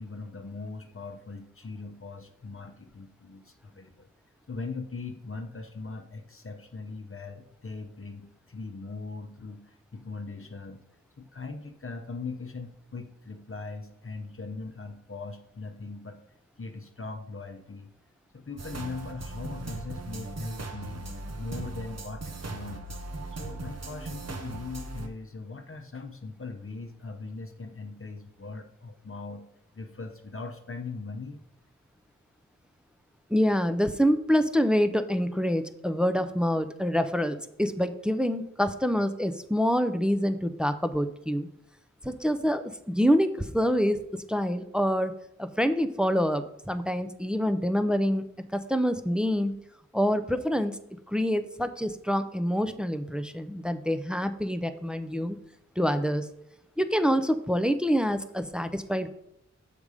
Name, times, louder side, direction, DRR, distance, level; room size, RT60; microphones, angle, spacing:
voice 1, 0.0-4.1 4.5-10.8 11.2-16.2 16.6-17.9 18.3-21.1 21.4-22.8 23.3-29.4 29.7-31.4, left 3 dB, 45° left, 5 dB, 0.8 m, -40 dB
sound 1, 18.6-25.1, right 2 dB, 60° right, 1.0 m, -38 dB
voice 2, 33.3-41.5 42.0-45.1 45.4-48.2 48.5-49.5 49.9-50.8 51.1-55.4 55.8-56.3 56.8-59.1, equal, 5° right, 10 dB, 0.5 m, -26 dB
7.0 x 5.1 x 4.8 m, 0.78 s
wide cardioid pair, 55°, 30 cm